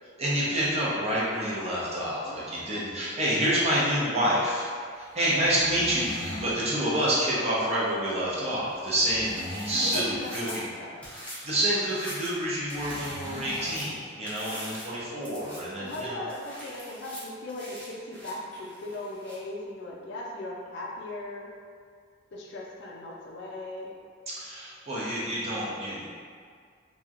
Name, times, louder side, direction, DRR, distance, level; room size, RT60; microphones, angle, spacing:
voice 1, 0.2-4.7 5.0-9.3 9.7-10.6 11.1-16.2 24.3-26.1, right 1 dB, 35° right, -7 dB, 0.6 m, -28 dB
voice 2, 2.2-3.3 5.1-5.5 8.5-8.9 9.9-11.1 14.4-14.7 15.8-21.5 22.3-23.9, left 1 dB, 65° left, -2 dB, 0.4 m, -39 dB
sound 1, 5.3-6.6 8.9-10.2 12.7-13.8, equal, 65° right, 1.1 m, -39 dB
sound 2, 9.3-10.6 11.0-11.4 11.7-12.4 12.7-13.9 14.2-14.9 15.2-15.6 15.8-19.4, equal, 10° left, 0.7 m, -43 dB
2.9 x 2.3 x 2.4 m, 2.1 s
head